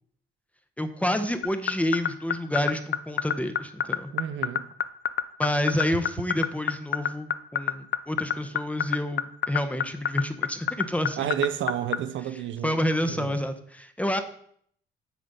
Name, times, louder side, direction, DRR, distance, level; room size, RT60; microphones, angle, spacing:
voice 1, 0.8-4.1 5.4-11.3 12.6-14.2, left 1 dB, 5° left, 0.7 m, -28 dB
sound 1, 1.4-12.0, left 10 dB, 60° left, 0.5 m, -24 dB
voice 2, 4.1-4.7 11.2-13.4, right 10 dB, 70° right, 0.6 m, -31 dB
9.0 x 3.3 x 5.3 m
cardioid pair, 90°, 20 cm